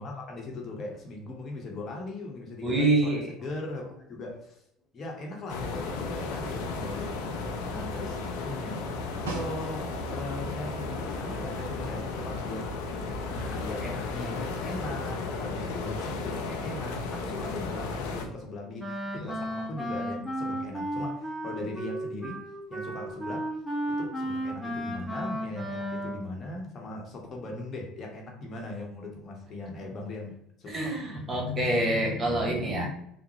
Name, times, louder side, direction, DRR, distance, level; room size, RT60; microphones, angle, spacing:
voice 1, 0.0-3.8 4.1-4.6 4.9-7.2 7.7-8.9 9.2-22.4 22.7-23.5 23.9-30.9, left 2 dB, 40° left, 0 dB, 0.9 m, -39 dB
voice 2, 2.6-3.3 19.1-19.4 30.7-32.9, right 1 dB, 35° right, 0 dB, 1.0 m, -26 dB
sound 1, 5.5-18.3, left 3 dB, 75° left, 0.5 m, -34 dB
Snare drum, 9.3-10.2 14.6-14.7, right 5 dB, 90° right, 0.5 m, -39 dB
Wind instrument woodwind instrument, 18.8-26.3, right 1 dB, 5° left, 1.1 m, -34 dB
3.5 x 2.0 x 3.1 m, 0.73 s
hypercardioid pair, 70°, 0 cm